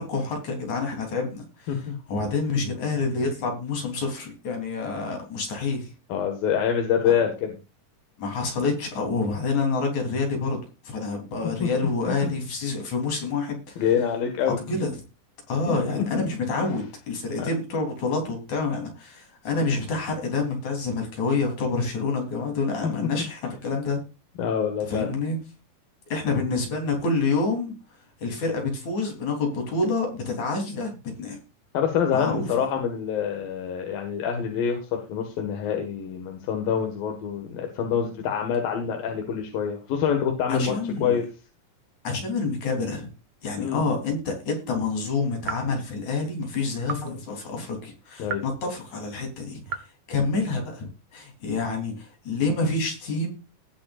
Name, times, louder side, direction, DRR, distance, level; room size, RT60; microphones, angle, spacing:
voice 1, 0.0-1.4 2.1-5.9 8.2-10.6 10.8-13.8 14.7-14.9 15.5-24.0 24.9-25.4 26.1-27.7 28.2-30.9 31.2-31.4 32.1-32.5 40.5-41.2 42.0-43.1 43.4-49.6 50.1-53.3, left 3 dB, 55° left, 2 dB, 4.8 m, -27 dB
voice 2, 6.1-7.6 11.4-11.7 12.1-12.4 13.8-14.6 15.7-16.2 16.6-16.8 17.4-17.5 22.8-22.9 24.4-25.1 31.7-41.3 43.6-43.8 48.2-48.5, left 8 dB, 85° left, 3 dB, 3.5 m, -26 dB
sound 1, 44.1-44.4 45.4-45.8 46.8-47.1 48.2-48.6 49.7-49.9, right 7 dB, 60° right, 2.3 m, -35 dB
19.0 x 7.7 x 2.5 m, 0.31 s
omnidirectional pair, 4.0 m